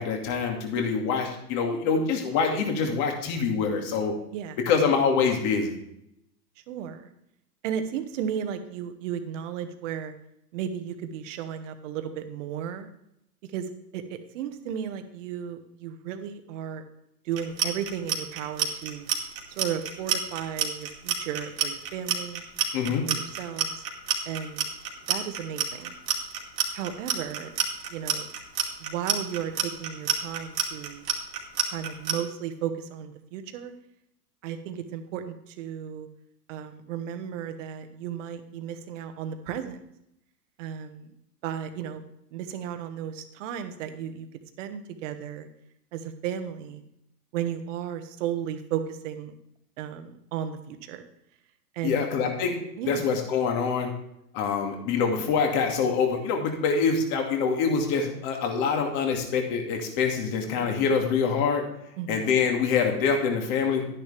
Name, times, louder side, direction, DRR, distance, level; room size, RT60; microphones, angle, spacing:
voice 1, 0.0-4.1 4.7-5.8 22.7-23.1 51.8-52.6 52.9-53.9 54.3-61.6 62.1-63.8, left 5 dB, 40° left, 3 dB, 2.3 m, -25 dB
voice 2, 6.7-7.1 7.6-10.1 10.5-12.9 13.5-16.8 17.2-19.1 19.5-22.4 22.9-23.8 24.2-24.7 25.1-25.9 26.7-27.5 27.9-28.3 28.8-31.0 31.7-33.7 34.4-36.1 36.5-39.8 40.6-41.1 41.4-42.0 42.3-44.3 44.6-45.5 45.9-46.8 47.3-49.3 49.8-51.0 51.7-52.1 52.8-53.1 62.0-62.3, right 9 dB, 45° right, 8 dB, 1.4 m, -34 dB
Clock, 17.3-32.1, right 8 dB, 70° right, 2.5 m, -28 dB
11.0 x 10.0 x 3.4 m, 0.77 s
hypercardioid pair, 125°, 50 cm